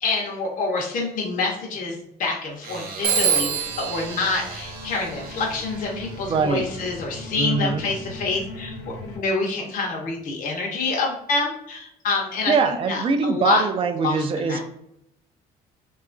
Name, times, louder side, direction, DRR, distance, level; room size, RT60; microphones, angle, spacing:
voice 1, 0.0-8.7 9.0-13.6 14.0-14.6, left 3 dB, 50° left, -1 dB, 0.7 m, -27 dB
sound 1, 2.6-7.9, right 4 dB, 60° right, 0.8 m, -40 dB
Telephone, 3.0-5.5, right 7 dB, 90° right, 0.5 m, -26 dB
sound 2, 3.5-9.2, left 1 dB, 85° left, 0.7 m, -39 dB
voice 2, 6.3-6.6 7.4-7.8 12.5-14.6, right 4 dB, 30° right, 6 dB, 0.4 m, -22 dB
2.8 x 2.3 x 2.4 m, 0.76 s
cardioid pair, 110°, 17 cm